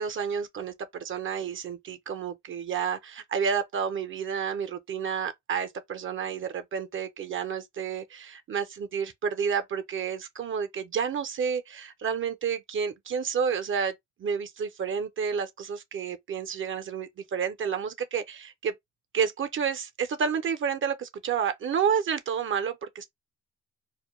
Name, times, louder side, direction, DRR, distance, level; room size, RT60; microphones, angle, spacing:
voice 1, 0.0-13.9 14.2-18.7 19.1-23.0, right 7 dB, 45° right, 0.4 m, -30 dB
2.1 x 2.1 x 2.8 m
cardioid pair, 90°, 30 cm